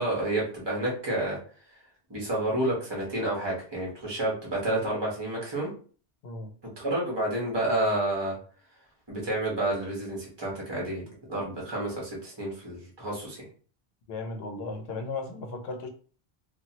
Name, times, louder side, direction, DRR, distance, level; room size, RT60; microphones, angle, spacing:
voice 1, 0.0-1.4 2.1-5.7 6.8-8.4 9.1-13.5, right 1 dB, 25° right, -3 dB, 1.0 m, -30 dB
voice 2, 14.1-15.9, left 3 dB, 80° left, 5 dB, 0.8 m, -35 dB
2.8 x 2.3 x 2.8 m, 0.41 s
omnidirectional pair, 1.0 m